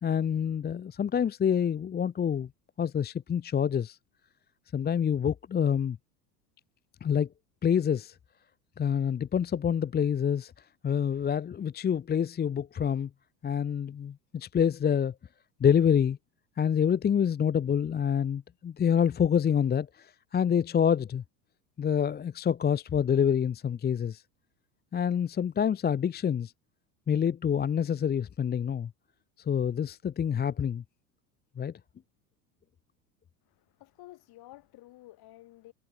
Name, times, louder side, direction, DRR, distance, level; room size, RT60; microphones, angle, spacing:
voice 1, 0.0-2.5 2.8-4.0 4.7-6.0 7.0-7.3 7.6-8.2 8.8-10.5 10.8-13.1 13.4-15.1 15.6-16.2 16.6-21.2 21.8-24.2 24.9-26.5 27.1-28.9 29.5-30.8 31.6-31.7, left 8 dB, 20° left, 0.8 m, -27 dB
voice 2, 33.4-35.7, left 17 dB, 50° left, 7.6 m, -52 dB
hypercardioid pair, 75°, 48 cm